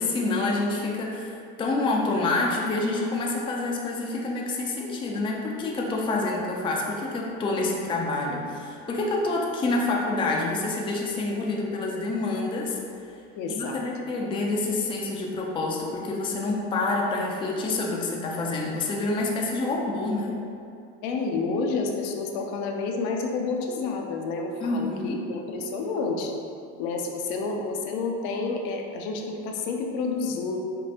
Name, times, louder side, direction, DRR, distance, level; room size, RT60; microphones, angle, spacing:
voice 1, 0.0-12.8 13.5-20.4 24.6-25.3, left 2 dB, 15° left, -2 dB, 0.4 m, -27 dB
voice 2, 13.4-13.8 21.0-26.4 26.8-30.6, left 4 dB, 75° left, 2 dB, 0.6 m, -29 dB
5.2 x 2.4 x 2.8 m, 2.5 s
cardioid pair, 130°, 30 cm